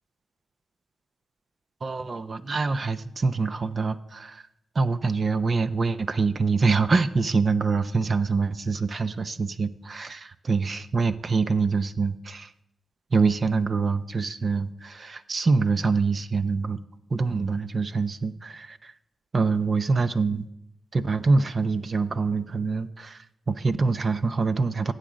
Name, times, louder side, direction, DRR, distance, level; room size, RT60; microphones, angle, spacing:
voice 1, 1.8-4.4 4.7-12.5 13.1-16.8 17.1-18.9 19.3-20.5 20.9-24.9, right 4 dB, 45° right, 13 dB, 0.6 m, -25 dB
12.5 x 8.1 x 6.2 m, 0.83 s
cardioid pair, 95°, 0 cm